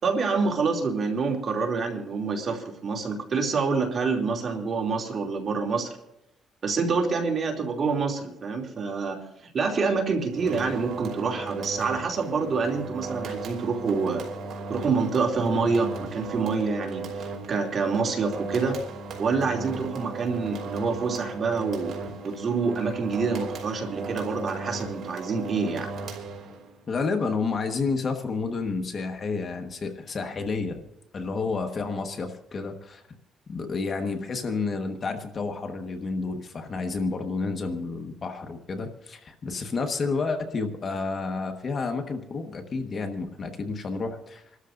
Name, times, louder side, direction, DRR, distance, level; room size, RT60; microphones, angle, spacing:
voice 1, 0.0-5.9 6.6-9.2 9.5-14.2 14.7-17.1 17.5-18.8 19.2-22.0 22.2-25.9, right 4 dB, 50° right, 1 dB, 2.8 m, -27 dB
sound 1, 10.3-26.8, right 4 dB, 65° right, 2.7 m, -36 dB
voice 2, 26.9-30.8 31.1-33.0 33.5-44.4, left 4 dB, 45° left, 5 dB, 1.5 m, -30 dB
27.0 x 13.0 x 2.6 m, 0.92 s
cardioid pair, 85°, 0 cm